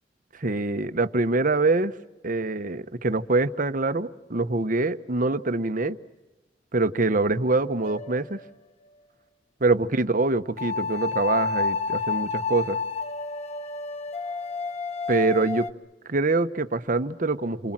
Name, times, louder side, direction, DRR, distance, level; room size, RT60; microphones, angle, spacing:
voice 1, 0.3-1.9 2.2-6.0 6.7-8.4 9.6-12.8 15.1-15.7 16.1-17.7, right 3 dB, 50° right, 11 dB, 1.1 m, -24 dB
sound 1, 7.8-8.5 10.6-15.7, left 4 dB, 40° left, 1.0 m, -30 dB
28.5 x 25.0 x 7.5 m, 1.0 s
head